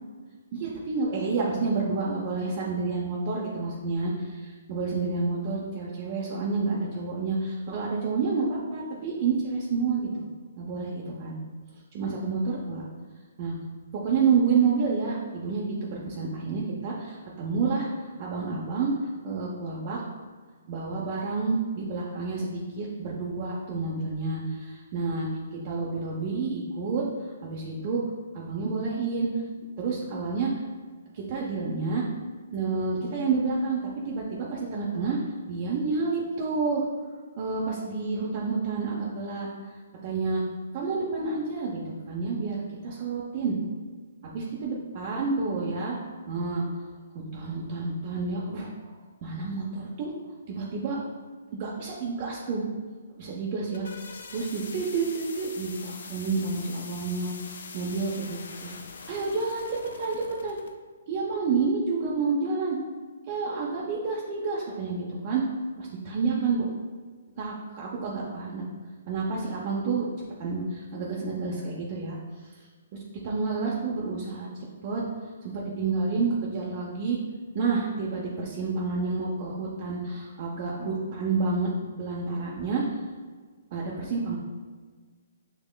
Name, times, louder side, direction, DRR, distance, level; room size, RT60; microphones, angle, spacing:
voice 1, 0.5-10.2 10.6-11.3 11.9-12.8 13.4-13.5 13.9-20.0 20.7-25.3 25.6-28.0 28.3-29.4 29.8-30.6 31.1-32.0 32.5-35.2 35.5-36.8 37.4-39.5 40.0-40.4 40.7-41.8 42.1-43.6 44.2-46.0 46.3-46.6 47.3-48.9 49.2-50.1 50.5-51.0 51.5-52.6 53.2-53.9 54.3-58.7 59.1-59.7 60.0-60.6 61.1-62.8 63.3-65.4 65.8-66.7 67.4-68.6 69.1-70.1 70.4-72.2 72.6-72.7 72.9-75.0 75.4-77.2 77.5-83.0 83.7-84.4, right 4 dB, 45° right, -5 dB, 0.7 m, -29 dB
sound 1, 53.4-60.7, left 4 dB, 70° left, 0.4 m, -43 dB
6.3 x 2.9 x 2.2 m, 1.4 s
hypercardioid pair, 135°, 0 cm